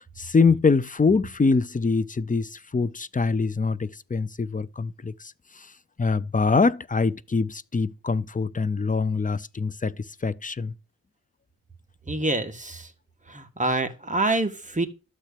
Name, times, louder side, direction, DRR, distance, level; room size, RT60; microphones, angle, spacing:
voice 1, 0.0-5.7 6.0-10.7, left 4 dB, 25° left, 0.5 m, -24 dB
voice 2, 12.1-12.9 13.3-14.9, right 2 dB, 20° right, 1.5 m, -26 dB
12.5 x 4.4 x 8.4 m
wide cardioid pair, 135°, 35 cm